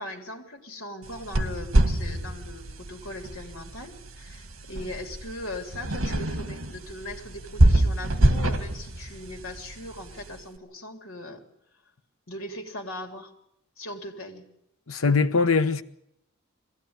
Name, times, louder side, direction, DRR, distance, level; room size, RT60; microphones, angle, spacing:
voice 1, 0.0-11.4 12.3-13.3 13.8-14.5, left 1 dB, 70° left, 3.3 m, -39 dB
sound 1, 1.0-10.4, right 1 dB, 70° right, 1.8 m, -26 dB
voice 2, 14.9-15.8, left 4 dB, 90° left, 1.1 m, -22 dB
21.5 x 16.0 x 9.6 m
head